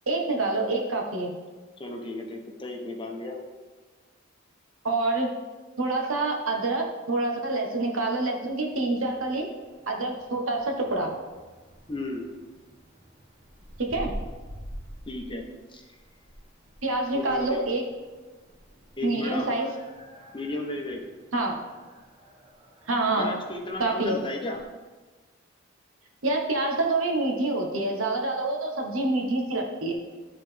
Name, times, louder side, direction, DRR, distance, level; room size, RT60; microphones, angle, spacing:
voice 1, 0.1-1.3 4.8-5.3 5.8-9.5 9.9-11.1 13.9-14.1 16.8-17.8 19.0-19.7 21.3-21.6 22.9-23.3 23.8-24.2 26.2-29.9, right 2 dB, 70° right, 1 dB, 1.2 m, -26 dB
voice 2, 1.8-3.4 11.9-12.3 15.1-15.8 17.1-17.6 19.0-19.5 20.3-21.0 23.2-24.6, left 2 dB, 25° left, 1 dB, 0.9 m, -34 dB
sound 1, 8.7-24.6, equal, 30° right, 1.0 m, -47 dB
12.0 x 4.0 x 3.4 m, 1.3 s
head